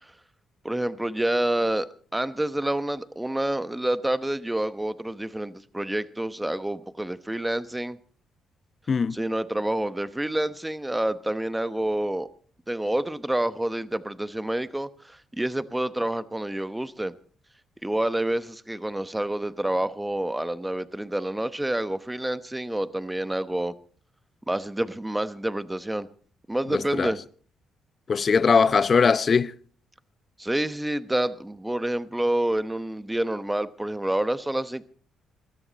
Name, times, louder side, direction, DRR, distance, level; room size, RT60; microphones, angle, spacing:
voice 1, 0.6-8.0 9.1-12.3 12.7-17.1 17.8-23.8 24.5-26.1 26.5-27.2 30.4-34.9, right 1 dB, 10° right, 1.0 m, -28 dB
voice 2, 26.7-27.1 28.1-29.5, left 5 dB, 40° left, 0.7 m, -20 dB
21.0 x 13.5 x 4.1 m
cardioid pair, 90°, 0 cm